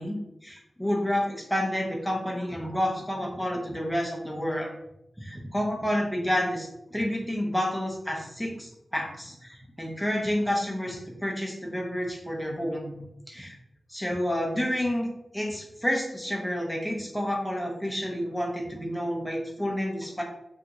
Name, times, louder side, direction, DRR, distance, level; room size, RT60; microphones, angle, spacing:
voice 1, 0.0-4.7 5.2-12.9 13.3-13.6 13.9-20.2, equal, ahead, -1 dB, 0.7 m, -29 dB
3.4 x 2.6 x 2.9 m, 0.85 s
wide cardioid pair, 105°, 0 cm